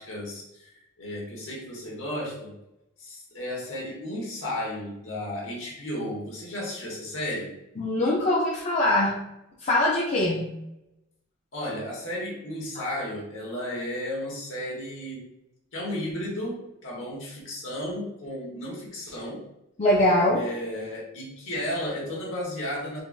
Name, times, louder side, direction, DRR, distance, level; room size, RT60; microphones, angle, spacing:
voice 1, 0.0-2.6 3.0-7.5 11.5-15.3 15.7-19.4 20.3-23.0, left 1 dB, 60° left, -3 dB, 1.1 m, -34 dB
voice 2, 7.8-9.2 9.6-10.6 12.7-12.8 19.8-20.4, left 1 dB, 35° left, -5 dB, 0.4 m, -22 dB
3.9 x 2.3 x 2.3 m, 0.86 s
head